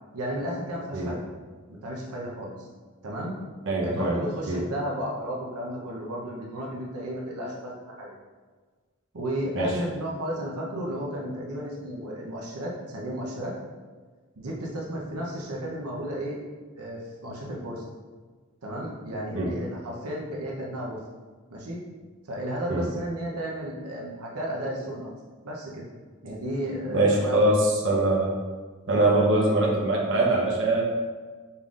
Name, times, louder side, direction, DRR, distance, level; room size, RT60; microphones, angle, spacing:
voice 1, 0.1-1.2 1.7-2.7 3.0-3.3 3.8-8.2 9.1-13.5 14.4-16.4 16.7-17.8 18.6-21.0 21.5-21.8 22.3-25.1 25.4-25.8 26.2-27.5, right 1 dB, 85° right, -3 dB, 0.8 m, -33 dB
voice 2, 3.7-4.2 4.5-4.6 9.5-9.8 19.3-19.5 22.7-22.8 26.9-28.3 28.9-30.8, right 2 dB, 60° right, -3 dB, 0.9 m, -23 dB
5.5 x 3.8 x 2.4 m, 1.4 s
head